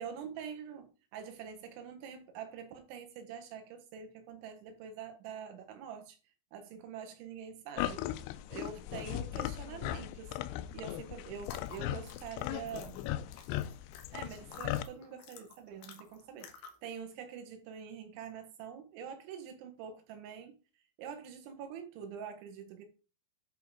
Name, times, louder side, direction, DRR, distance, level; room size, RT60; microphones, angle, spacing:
voice 1, 0.0-6.2 6.5-8.1 8.5-10.3 10.7-13.0 14.1-20.5 21.0-22.8, right 7 dB, 85° right, 3.8 m, -45 dB
sound 1, 7.8-14.8, left 13 dB, 90° left, 2.3 m, -38 dB
sound 2, 11.4-16.9, left 6 dB, 70° left, 3.0 m, -52 dB
10.5 x 3.8 x 4.8 m
omnidirectional pair, 5.2 m